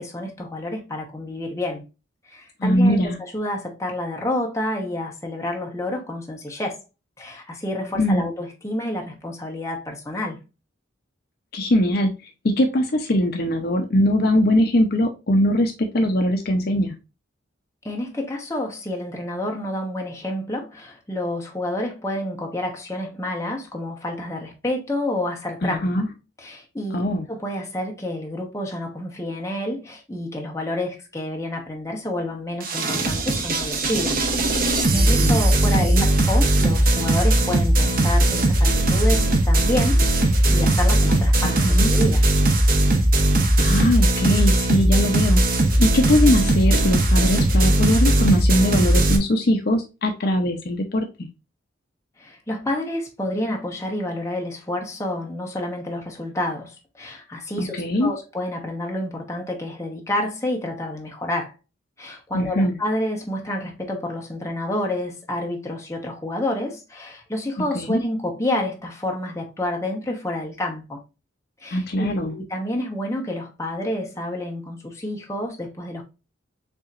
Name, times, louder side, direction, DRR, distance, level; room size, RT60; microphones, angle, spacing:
voice 1, 0.0-1.8 2.3-6.8 7.2-10.4 17.8-25.9 26.4-34.2 34.6-42.2 52.2-61.5 62.0-71.0 71.6-76.0, left 1 dB, 15° left, 1.0 m, -29 dB
voice 2, 2.6-3.2 8.0-8.3 11.5-12.1 12.4-16.9 25.6-26.1 26.9-27.3 34.9-36.1 41.4-41.9 43.6-45.4 45.8-51.3 57.6-58.1 62.3-62.8 67.7-68.0 71.7-72.3, left 1 dB, 50° left, 0.6 m, -21 dB
sound 1, 32.6-49.2, right 1 dB, 45° right, 0.9 m, -18 dB
6.9 x 2.9 x 2.5 m
head